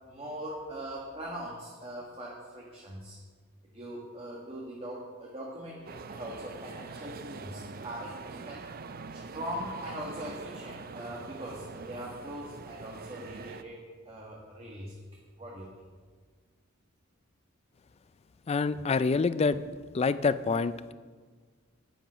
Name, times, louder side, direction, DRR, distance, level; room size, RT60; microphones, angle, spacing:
voice 1, 0.1-3.2 3.6-8.6 9.1-15.0 15.4-15.9, right 1 dB, 25° right, -3 dB, 1.5 m, -41 dB
sound 1, 5.9-13.6, right 4 dB, 45° right, 0.5 m, -44 dB
voice 2, 18.5-19.6 19.9-20.9, left 4 dB, 30° left, 15 dB, 0.3 m, -26 dB
10.0 x 9.1 x 6.3 m, 1.6 s
head